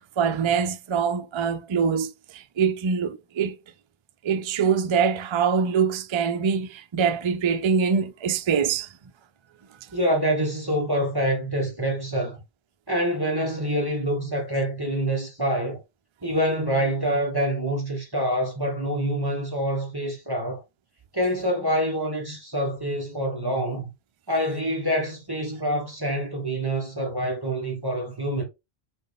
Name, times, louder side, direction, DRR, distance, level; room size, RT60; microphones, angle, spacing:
voice 1, 0.0-3.6 4.2-8.9, right 6 dB, 45° right, 0.4 m, -24 dB
voice 2, 9.9-12.4 12.9-15.8 16.2-20.6 21.1-23.9 24.3-28.4, equal, 20° right, 1.1 m, -26 dB
4.3 x 3.2 x 3.5 m
omnidirectional pair, 1.1 m